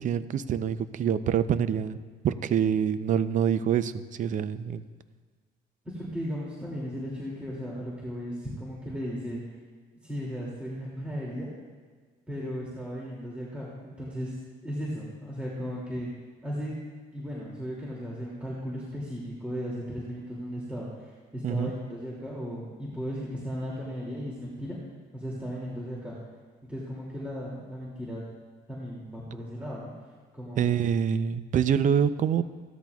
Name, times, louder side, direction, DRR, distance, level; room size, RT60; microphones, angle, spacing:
voice 1, 0.0-2.0 2.2-4.8 21.4-21.7 30.6-32.4, right 8 dB, 50° right, 13 dB, 0.6 m, -26 dB
voice 2, 5.8-9.4 10.0-11.5 12.3-14.4 14.6-16.1 16.4-16.7 17.1-24.8 25.1-26.2 26.7-28.2 28.7-29.9 30.3-30.8, equal, 5° right, -6 dB, 2.6 m, -36 dB
16.5 x 13.0 x 2.4 m, 1.5 s
cardioid pair, 110°, 17 cm